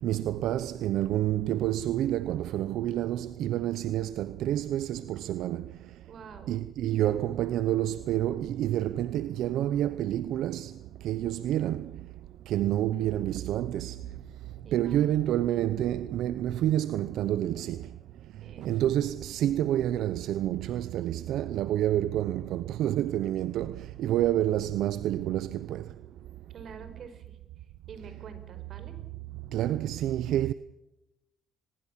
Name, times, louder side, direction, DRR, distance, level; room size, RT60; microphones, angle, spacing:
voice 1, 0.0-5.7 6.5-12.1 12.5-14.0 14.7-17.9 18.6-25.9 29.5-30.5, right 12 dB, 80° right, 0.7 m, -28 dB
voice 2, 6.1-6.5 14.6-15.6 18.4-18.8 26.5-29.0, right 5 dB, 60° right, 5.2 m, -48 dB
24.5 x 21.0 x 7.4 m
cardioid pair, 105°, 0 cm